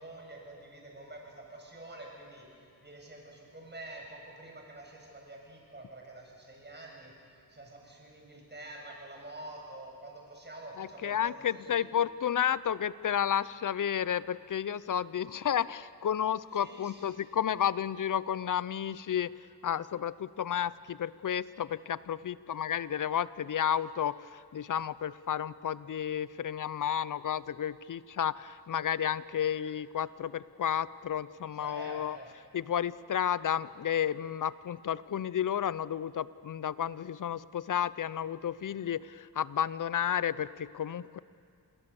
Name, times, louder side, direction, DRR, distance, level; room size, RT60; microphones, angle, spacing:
voice 1, 0.0-2.5 2.8-11.3 11.6-11.9 16.6-17.1 31.5-32.3, right 2 dB, 25° right, 0 dB, 6.9 m, -47 dB
voice 2, 10.8-19.3 19.6-32.2 32.5-41.2, left 9 dB, 55° left, 18 dB, 0.7 m, -32 dB
28.0 x 20.5 x 7.0 m, 2.3 s
cardioid pair, 80°, 39 cm